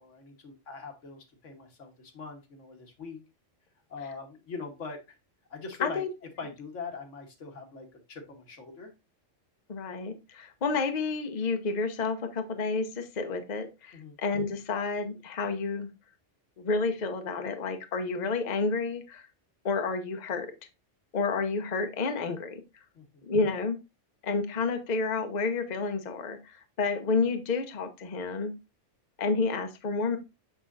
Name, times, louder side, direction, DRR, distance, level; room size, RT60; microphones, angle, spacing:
voice 1, 0.0-3.2 3.9-5.2 5.5-6.0 6.4-8.9 13.9-14.2 22.9-23.2, left 4 dB, 80° left, 3 dB, 1.6 m, -42 dB
voice 2, 9.7-15.9 16.6-19.3 19.6-20.5 21.1-22.6 23.2-23.8 24.2-28.5 29.2-30.2, left 4 dB, 40° left, 6 dB, 0.8 m, -30 dB
6.2 x 6.1 x 2.5 m, 0.26 s
omnidirectional pair, 1.2 m